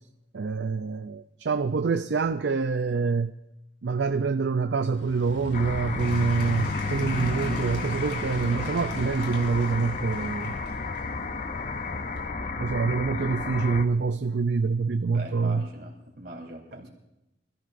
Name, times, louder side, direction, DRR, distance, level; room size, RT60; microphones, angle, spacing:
voice 1, 0.3-3.3 3.8-10.5 12.6-15.7, right 4 dB, 70° right, 0.5 m, -26 dB
sound 1, 4.9-9.9, left 2 dB, 80° left, 0.8 m, -35 dB
sound 2, 5.5-13.8, left 4 dB, 40° left, 0.6 m, -33 dB
Applause / Crowd, 6.0-12.3, left 2 dB, 60° left, 3.1 m, -42 dB
voice 2, 15.1-16.9, right 1 dB, 55° right, 3.8 m, -41 dB
26.0 x 15.5 x 2.6 m
head